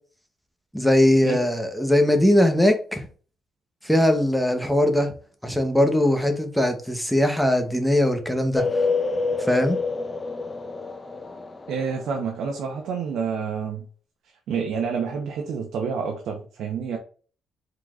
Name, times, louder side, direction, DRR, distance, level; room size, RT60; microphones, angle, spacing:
voice 1, 0.7-3.1 3.8-5.1 5.4-8.9 9.5-9.8, left 1 dB, ahead, 0.9 m, -20 dB
sound 1, 8.5-12.1, left 4 dB, 25° left, 0.5 m, -27 dB
voice 2, 11.7-13.8 14.5-17.0, right 6 dB, 75° right, 0.8 m, -28 dB
4.6 x 3.9 x 2.4 m
cardioid pair, 105°, 0 cm